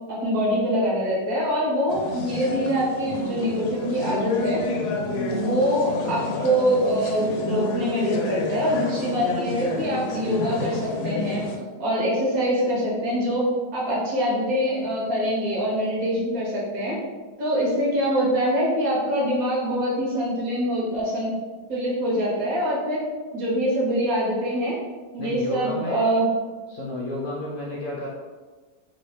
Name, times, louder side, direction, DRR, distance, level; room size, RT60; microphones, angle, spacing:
voice 1, 0.1-4.6 5.3-11.4 11.8-13.4 13.7-17.0 17.4-21.3 21.7-23.0 23.3-24.7 25.1-26.3, equal, 65° right, -5 dB, 1.4 m, -24 dB
sound 1, 1.9-11.6, left 3 dB, 85° left, 1.1 m, -29 dB
voice 2, 25.2-26.0 26.7-28.1, left 1 dB, 65° left, -3 dB, 0.9 m, -32 dB
3.1 x 2.7 x 3.1 m, 1.4 s
omnidirectional pair, 1.7 m